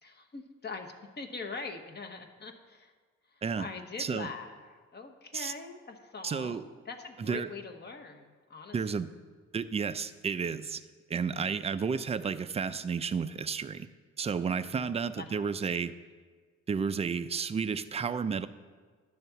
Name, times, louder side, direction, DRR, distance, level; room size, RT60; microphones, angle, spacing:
voice 1, 0.0-2.9 3.3-8.8 14.7-15.5, left 4 dB, 35° left, 4 dB, 0.9 m, -43 dB
voice 2, 4.0-4.3 5.3-5.5 6.2-6.6 7.2-7.5 8.7-9.1 9.5-10.8 11.1-13.9 14.2-15.9 16.7-18.5, right 6 dB, 20° right, 12 dB, 0.3 m, -32 dB
10.5 x 3.6 x 6.8 m, 1.5 s
cardioid pair, 90°, 30 cm